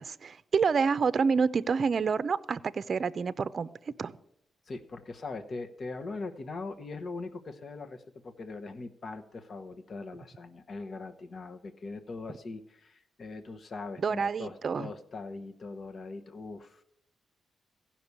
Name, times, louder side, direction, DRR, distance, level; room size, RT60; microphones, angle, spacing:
voice 1, 0.0-3.7 4.0-4.1 14.0-14.9, right 5 dB, 50° right, 15 dB, 0.6 m, -28 dB
voice 2, 4.7-16.8, left 3 dB, 50° left, 7 dB, 1.0 m, -41 dB
15.5 x 5.9 x 8.2 m, 0.76 s
cardioid pair, 80°, 0 cm